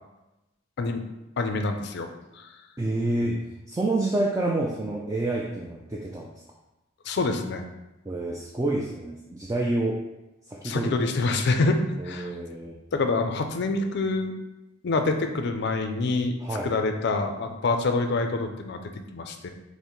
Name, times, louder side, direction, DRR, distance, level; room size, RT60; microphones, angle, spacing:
voice 1, 1.4-2.1 2.4-2.5 7.1-7.7 10.6-11.8 12.0-12.3 12.9-14.3 14.8-16.4 16.6-19.5, left 3 dB, 55° left, 6 dB, 0.4 m, -26 dB
voice 2, 2.8-6.3 8.1-10.0 10.5-10.9 12.0-12.8 16.4-16.7, right 2 dB, 15° right, -2 dB, 0.3 m, -28 dB
5.5 x 2.1 x 3.0 m, 0.97 s
head